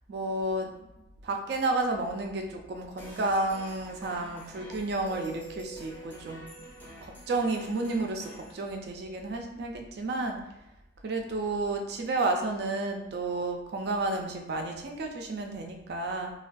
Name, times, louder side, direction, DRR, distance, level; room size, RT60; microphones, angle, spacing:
voice 1, 0.1-0.7 1.0-6.5 7.0-10.4 11.0-16.3, right 2 dB, 60° right, 3 dB, 0.4 m, -31 dB
sound 1, 3.0-8.5, right 1 dB, 10° left, 0.5 m, -47 dB
2.3 x 2.2 x 2.5 m, 0.90 s
head